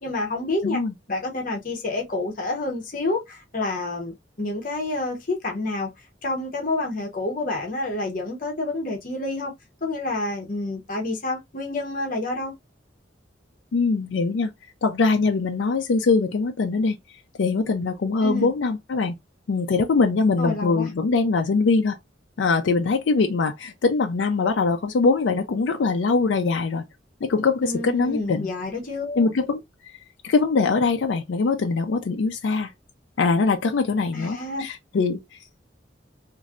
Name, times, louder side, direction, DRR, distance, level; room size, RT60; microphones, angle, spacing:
voice 1, 0.0-0.8 1.1-5.9 6.2-9.5 9.8-12.5 18.2-18.5 20.4-20.9 27.6-29.3 34.1-34.6 34.9-35.0, left 2 dB, 45° left, 0.9 m, -28 dB
voice 2, 0.6-0.9 13.7-14.5 14.8-17.0 17.4-19.1 19.5-22.0 22.4-26.8 27.2-28.5 29.2-29.6 30.2-32.7 33.2-35.2, left 4 dB, 80° left, 0.4 m, -22 dB
3.1 x 2.6 x 2.4 m
head